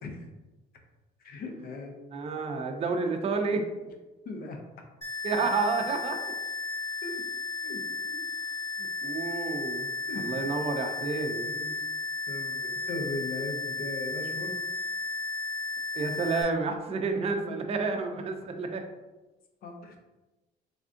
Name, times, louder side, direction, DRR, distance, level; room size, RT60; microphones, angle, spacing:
voice 1, 1.2-1.9 4.2-4.6 7.0-7.2 7.6-8.2 10.1-10.4 11.4-11.8 12.3-14.6 18.1-18.2 19.6-20.0, left 2 dB, 65° left, 3 dB, 0.6 m, -38 dB
voice 2, 2.1-3.6 5.2-6.3 9.0-9.9 10.2-11.5 15.9-18.8, right 4 dB, 35° right, 4 dB, 0.4 m, -30 dB
sound 1, 5.0-16.4, left 4 dB, 15° left, 0.8 m, -34 dB
3.4 x 2.4 x 2.5 m, 1.1 s
cardioid pair, 110°, 17 cm